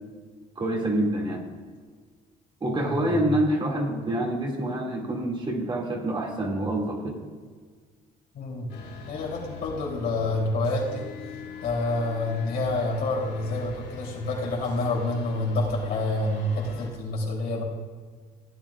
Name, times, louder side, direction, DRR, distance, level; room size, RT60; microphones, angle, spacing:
voice 1, 0.6-1.5 2.6-7.2, right 1 dB, 30° right, -1 dB, 2.3 m, -27 dB
voice 2, 2.7-3.2 8.3-8.7 9.1-11.1 11.6-17.6, left 2 dB, 70° left, -2 dB, 3.2 m, -28 dB
sound 1, 8.7-16.9, left 6 dB, 85° left, 2.7 m, -43 dB
15.5 x 9.2 x 2.4 m, 1.5 s
cardioid pair, 110°, 17 cm